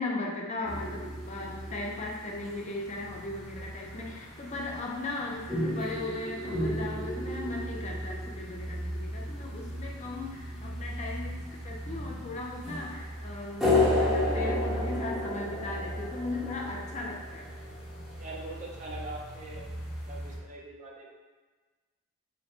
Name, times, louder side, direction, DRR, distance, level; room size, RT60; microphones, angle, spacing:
voice 1, 0.0-17.5, left 2 dB, 30° left, -1 dB, 0.4 m, -37 dB
sound 1, 0.6-20.4, left 1 dB, ahead, 0.9 m, -34 dB
voice 2, 18.1-19.7 20.0-21.1, right 2 dB, 35° right, -2 dB, 0.5 m, -42 dB
3.9 x 2.1 x 4.2 m, 1.3 s
head